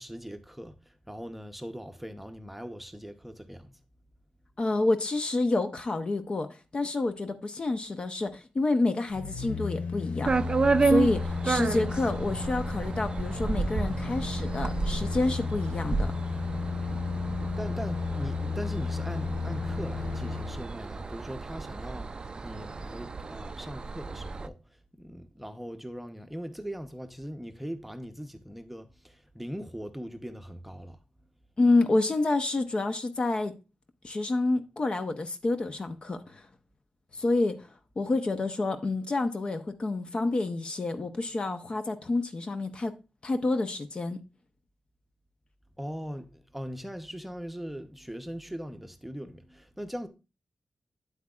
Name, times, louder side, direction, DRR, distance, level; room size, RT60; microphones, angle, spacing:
voice 1, 0.0-3.8 17.6-24.6 25.0-31.0 45.8-50.1, equal, 5° right, 0.8 m, -40 dB
voice 2, 4.6-10.3 10.8-16.1 31.6-33.5 34.0-36.4 37.1-37.7 38.0-42.9 43.2-44.2, left 2 dB, 45° left, 0.7 m, -28 dB
sound 1, 9.1-20.7 21.1-21.2, left 5 dB, 90° left, 0.6 m, -34 dB
sound 2, 10.2-24.5, right 4 dB, 40° right, 0.4 m, -31 dB
8.6 x 8.0 x 2.4 m
wide cardioid pair, 95°, 2 cm